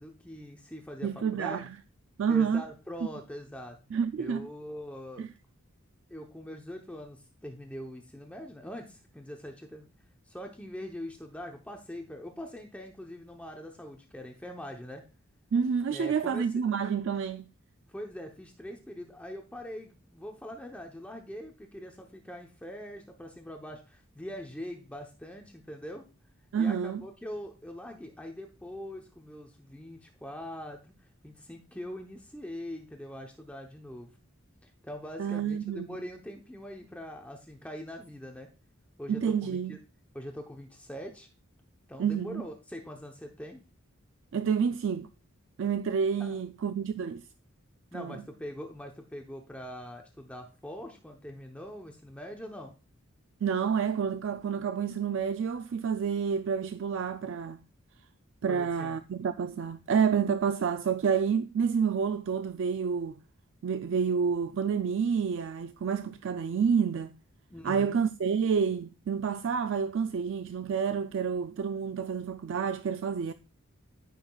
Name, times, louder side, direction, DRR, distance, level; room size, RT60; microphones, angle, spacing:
voice 1, 0.0-1.7 2.3-3.8 4.2-5.3 6.1-9.9 10.3-15.0 15.9-16.6 17.9-26.0 26.6-30.9 31.2-34.1 34.6-38.5 39.0-39.8 40.1-41.3 41.9-43.6 46.2-46.3 47.9-52.7 58.5-59.0 67.5-68.0, equal, 5° left, 0.8 m, -42 dB
voice 2, 1.0-1.8 2.2-2.6 3.9-4.5 5.2-5.3 15.5-17.5 26.5-27.0 35.2-36.0 39.1-39.8 42.0-42.5 44.3-45.1 45.6-47.3 47.9-48.2 53.4-57.6 58.4-63.2 63.6-67.1 67.6-73.3, right 6 dB, 65° right, 0.4 m, -29 dB
13.0 x 5.7 x 2.3 m
head